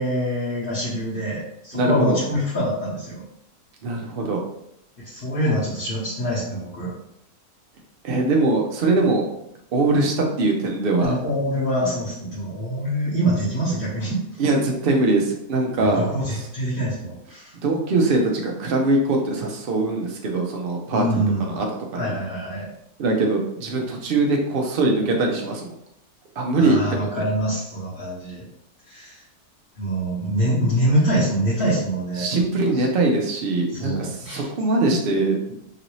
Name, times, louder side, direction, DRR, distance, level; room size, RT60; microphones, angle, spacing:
voice 1, 0.0-3.2 5.0-6.9 11.0-14.2 15.8-17.5 20.9-21.6 22.0-22.7 26.6-28.5 28.9-29.2 29.8-32.3 32.7-32.8 33.7-34.5, equal, 40° left, -10 dB, 1.0 m, -25 dB
voice 2, 1.7-2.2 3.8-4.4 8.0-9.3 9.7-11.2 14.4-16.5 17.6-22.1 23.0-25.7 26.4-27.1 32.2-35.6, right 2 dB, 70° right, 1 dB, 0.5 m, -22 dB
3.1 x 2.7 x 3.0 m, 0.77 s
omnidirectional pair, 1.7 m